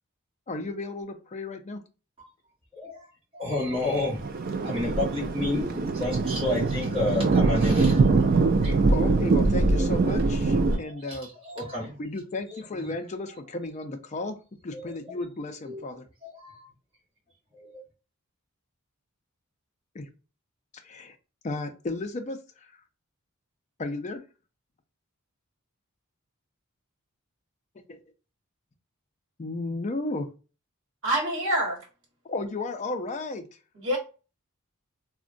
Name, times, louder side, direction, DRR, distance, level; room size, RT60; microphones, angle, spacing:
voice 1, 0.5-1.8 8.9-11.3 12.0-14.4 14.6-16.1 19.9-20.1 20.8-21.2 21.4-22.8 23.8-24.2 27.9-28.0 29.4-30.3 32.2-33.5, left 2 dB, 30° left, 0.4 m, -34 dB
voice 2, 2.7-3.1 3.3-4.3 4.6-8.7 10.7-11.2 11.4-11.9 12.5-12.9 14.7-14.9 15.7-15.8 16.2-16.7 17.5-17.8, left 2 dB, 25° right, 1.3 m, -31 dB
Thunder, 3.9-10.8, right 3 dB, 40° right, 0.4 m, -23 dB
voice 3, 31.0-31.8 33.7-34.0, right 1 dB, 60° right, 1.1 m, -26 dB
3.6 x 2.1 x 2.5 m
head